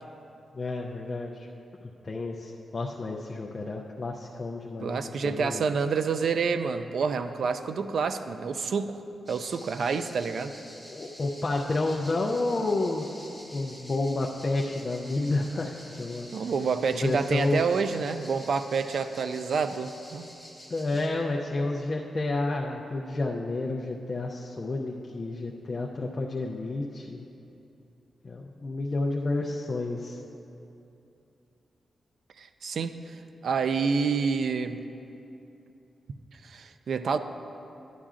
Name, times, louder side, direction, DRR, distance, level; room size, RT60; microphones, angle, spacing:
voice 1, 0.5-1.5 2.0-5.7 10.9-16.3 17.0-17.6 20.7-27.2 28.2-30.2, left 2 dB, 30° left, -1 dB, 0.4 m, -30 dB
voice 2, 4.8-9.0 9.3-10.5 16.3-20.3 32.4-33.2 33.4-34.8 36.4-37.2, right 5 dB, 60° right, 9 dB, 0.3 m, -28 dB
sound 1, 9.3-21.1, equal, 25° right, 1.5 m, -48 dB
11.5 x 10.0 x 2.5 m, 2.8 s
wide cardioid pair, 170°, 0 cm